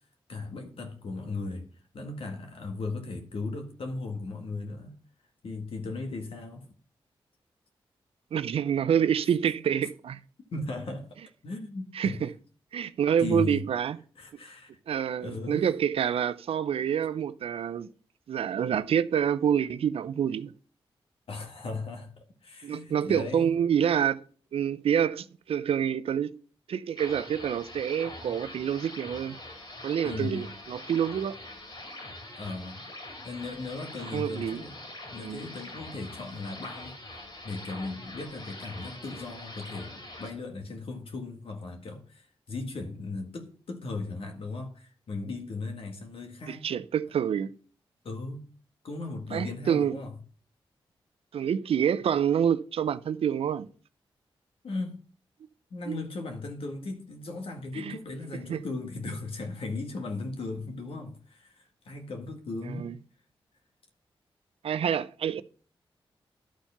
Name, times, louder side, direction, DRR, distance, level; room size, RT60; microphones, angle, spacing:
voice 1, 0.3-1.7 1.9-5.0 5.4-6.7 10.5-11.1 11.4-12.2 13.2-13.7 14.2-14.7 15.2-15.7 21.3-23.5 30.0-30.5 32.3-32.8 33.2-34.8 35.1-37.0 37.4-46.7 48.0-48.4 48.8-50.2 54.6-55.0 55.7-62.9, left 3 dB, 75° left, 1.8 m, -37 dB
voice 2, 8.3-10.2 11.9-12.3 12.7-14.0 14.9-17.9 18.3-20.5 22.6-24.2 24.5-26.4 26.7-29.4 29.8-31.4 34.1-34.6 35.2-35.4 46.5-47.5 49.3-50.0 51.3-53.7 55.9-56.0 57.7-57.9 58.5-58.6 62.7-62.9 64.6-65.4, right 8 dB, 80° right, 0.5 m, -27 dB
sound 1, 27.0-40.3, left 1 dB, 55° left, 3.5 m, -44 dB
11.5 x 4.5 x 5.8 m
cardioid pair, 60°, 10 cm